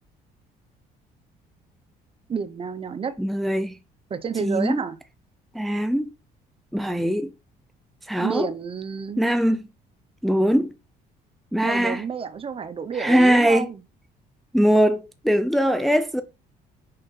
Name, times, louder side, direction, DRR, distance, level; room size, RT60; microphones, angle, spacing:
voice 1, 2.3-3.2 4.1-5.0 8.2-9.2 11.6-13.8, right 6 dB, 35° right, 0.9 m, -29 dB
voice 2, 3.2-3.7 4.4-4.8 5.5-6.1 6.7-7.3 8.1-8.5 9.2-9.6 10.2-10.7 11.5-12.0 12.9-13.7 14.5-16.2, equal, ahead, 0.6 m, -21 dB
6.5 x 5.1 x 4.3 m
cardioid pair, 110°, 17 cm